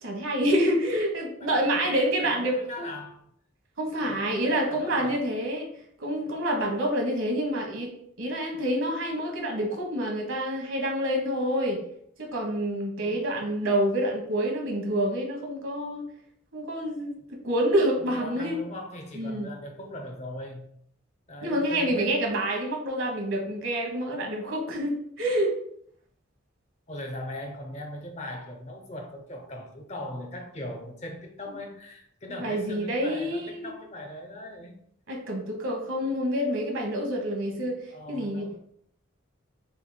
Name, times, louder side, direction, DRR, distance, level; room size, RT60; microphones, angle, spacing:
voice 1, 0.0-2.9 3.8-5.7 6.0-11.8 12.3-16.0 16.5-17.2 17.4-18.6 19.1-19.5 21.4-25.5 32.4-33.7 35.1-37.8 38.1-38.6, right 1 dB, 80° right, 1.2 m, -27 dB
voice 2, 1.4-3.3 3.9-5.3 13.0-13.4 18.0-20.7 21.3-22.4 26.9-34.8 37.6-38.6, left 1 dB, 35° left, 0.7 m, -40 dB
6.9 x 3.4 x 2.2 m
head